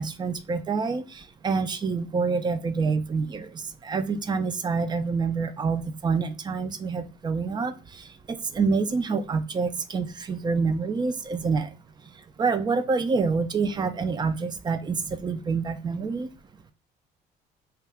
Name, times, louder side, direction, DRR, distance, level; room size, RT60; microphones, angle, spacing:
voice 1, 0.0-3.5 3.8-7.7 8.3-11.7 12.4-16.3, right 4 dB, 25° right, 11 dB, 0.3 m, -27 dB
2.7 x 2.3 x 3.3 m, 0.33 s
cardioid pair, 110°, 17 cm